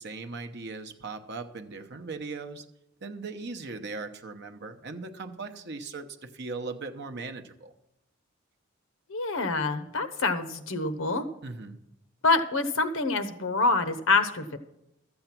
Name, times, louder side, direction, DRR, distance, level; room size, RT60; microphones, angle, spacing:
voice 1, 0.0-2.6 3.0-7.7 11.4-11.8, right 3 dB, 55° right, 8 dB, 0.8 m, -39 dB
voice 2, 9.1-11.2 12.2-14.6, left 3 dB, 70° left, 10 dB, 1.0 m, -26 dB
13.0 x 7.9 x 5.9 m, 0.85 s
head